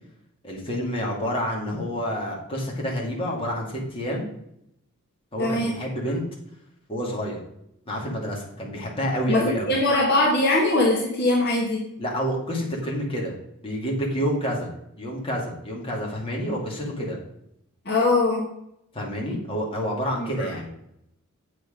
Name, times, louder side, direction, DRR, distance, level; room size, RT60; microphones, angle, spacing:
voice 1, 0.4-4.3 5.3-6.2 6.9-7.4 7.9-9.7 12.0-13.4 13.6-14.7 15.0-17.2 18.9-20.7, equal, 25° left, -2 dB, 2.3 m, -28 dB
voice 2, 5.4-5.7 9.3-11.8 17.8-18.4 20.2-20.3, left 2 dB, 50° left, -1 dB, 1.6 m, -21 dB
8.3 x 6.2 x 5.1 m, 0.78 s
head